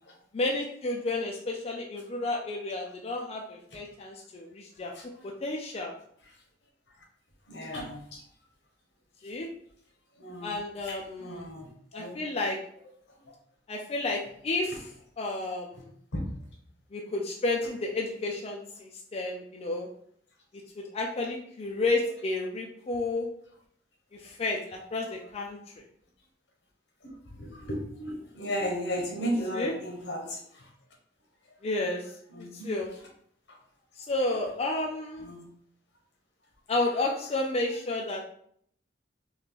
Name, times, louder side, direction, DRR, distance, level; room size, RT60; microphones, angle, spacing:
voice 1, 0.3-4.9 5.4-5.9 9.2-9.5 10.4-11.5 11.9-12.6 13.7-14.9 15.2-15.9 16.9-19.9 20.8-23.3 24.2-25.6 29.3-29.7 31.6-32.0 32.4-32.9 34.0-35.3 36.7-38.2, left 2 dB, 35° left, 0 dB, 0.4 m, -31 dB
voice 2, 7.5-8.2 10.2-10.6 10.9-11.7 11.9-12.2 16.1-16.2 27.4-30.7 32.3-32.7 35.2-35.4, equal, 80° left, 1 dB, 1.0 m, -34 dB
3.1 x 2.4 x 3.5 m, 0.65 s
head